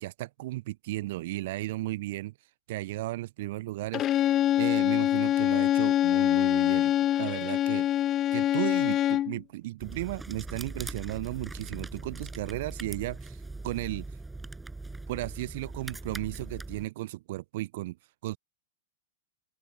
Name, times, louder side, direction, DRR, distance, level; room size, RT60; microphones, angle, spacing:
voice 1, 0.0-2.3 2.7-7.9 8.3-14.1 15.1-18.0 18.2-18.4, right 17 dB, 55° right, 0.7 m, -35 dB
Bowed string instrument, 3.9-9.4, left 12 dB, 30° left, 0.4 m, -25 dB
sound 1, 9.8-16.9, right 2 dB, 10° right, 6.5 m, -41 dB
open air
figure-of-eight pair, 100°, 0 cm